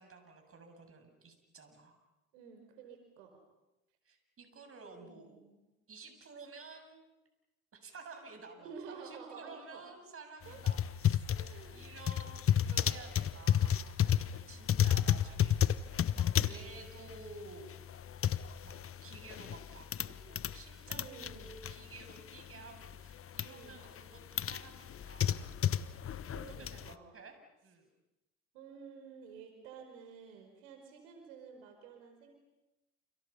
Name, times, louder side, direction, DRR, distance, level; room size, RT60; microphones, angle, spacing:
voice 1, 0.0-2.0 4.0-5.4 5.9-7.1 7.7-11.2 11.7-17.7 18.6-25.5 26.5-27.9, right 4 dB, 40° right, 5 dB, 7.5 m, -52 dB
voice 2, 2.3-3.4 4.9-5.6 8.6-9.8 10.5-10.6 11.3-11.8 12.7-13.0 16.3-16.7 20.9-21.6 23.4-23.9 26.3-27.2 28.5-32.3, right 6 dB, 80° right, 5 dB, 4.9 m, -51 dB
sound 1, 10.4-20.6 20.9-22.5 22.8-23.5 24.0-26.9, left 10 dB, 40° left, 1.1 m, -32 dB
29.5 x 29.0 x 5.7 m, 0.98 s
hypercardioid pair, 70°, 35 cm